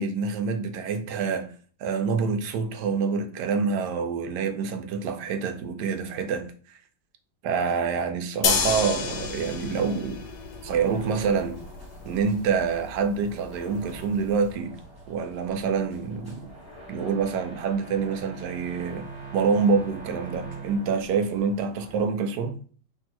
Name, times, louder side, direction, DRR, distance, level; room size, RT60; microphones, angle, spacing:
voice 1, 0.0-1.5 1.8-6.8 7.4-10.2 10.6-11.6 12.0-14.8 15.1-16.4 16.9-19.1 19.3-22.6, right 5 dB, 75° right, 1.2 m, -26 dB
sound 1, 8.4-14.5, left 6 dB, 80° left, 1.2 m, -32 dB
sound 2, 9.0-22.0, right 3 dB, 5° right, 1.6 m, -43 dB
3.5 x 2.6 x 4.3 m
omnidirectional pair, 1.8 m